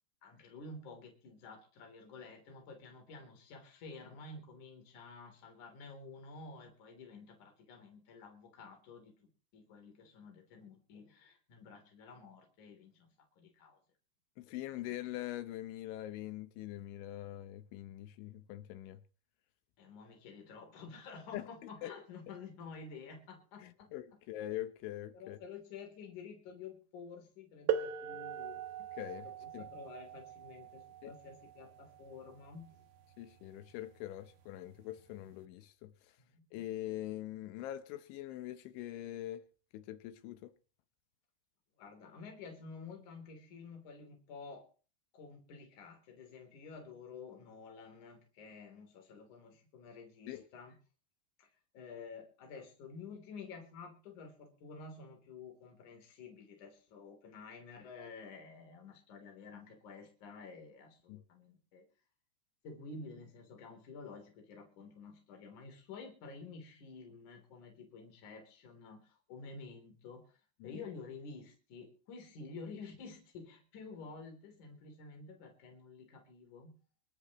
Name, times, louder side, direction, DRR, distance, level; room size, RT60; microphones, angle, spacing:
voice 1, 0.2-13.1 13.4-13.8 19.8-24.2 25.1-28.6 29.2-32.9 36.2-36.4 41.8-44.7 45.1-50.8 51.4-51.5 51.7-61.9 62.6-70.2 70.6-76.7, left 4 dB, 45° left, 4.5 m, -51 dB
voice 2, 14.4-19.0 21.3-21.5 21.8-21.9 23.6-25.4 28.9-29.3 29.5-29.6 31.0-31.1 33.2-35.9 36.5-39.4 39.7-40.5 50.3-50.4 61.1-61.2 70.6-70.8, left 14 dB, 85° left, 3.3 m, -43 dB
sound 1, 27.7-33.1 34.2-34.3 35.1-35.3, right 9 dB, 70° right, 2.8 m, -40 dB
25.0 x 13.0 x 3.1 m
omnidirectional pair, 5.4 m